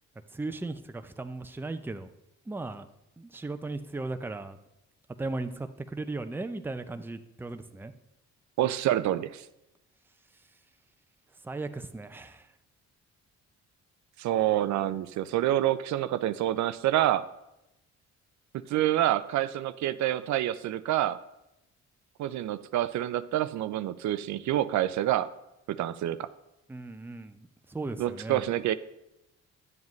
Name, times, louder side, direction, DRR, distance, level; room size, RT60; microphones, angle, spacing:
voice 1, 0.3-2.1 2.5-2.9 3.2-4.6 5.2-7.9 11.4-12.5 26.7-28.4, right 2 dB, 5° right, 9 dB, 0.5 m, -37 dB
voice 2, 8.6-9.4 14.2-17.2 18.5-21.2 22.2-25.3 25.7-26.3 28.0-28.7, right 13 dB, 70° right, 14 dB, 0.5 m, -27 dB
10.5 x 7.3 x 3.1 m, 0.89 s
cardioid pair, 90°, 30 cm